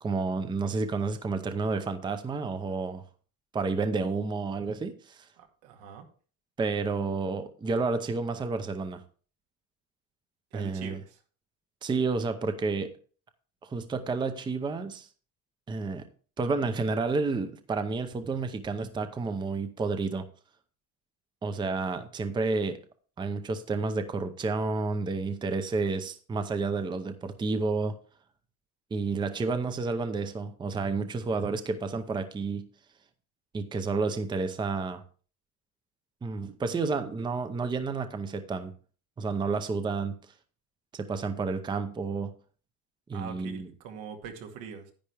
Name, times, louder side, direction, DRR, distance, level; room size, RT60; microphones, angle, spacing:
voice 1, 0.0-3.0 3.5-5.3 6.6-9.0 10.5-11.0 11.8-12.9 13.6-15.1 15.7-16.0 16.4-20.2 21.4-22.8 23.2-27.9 28.9-32.7 33.5-35.0 36.2-38.7 39.2-40.2 40.9-42.3 43.1-43.7, right 4 dB, 10° right, 9 dB, 0.6 m, -30 dB
voice 2, 5.4-6.1 10.5-11.2 43.1-44.9, right 7 dB, 85° right, 4 dB, 2.2 m, -43 dB
10.5 x 9.7 x 3.4 m, 0.40 s
cardioid pair, 160°, 37 cm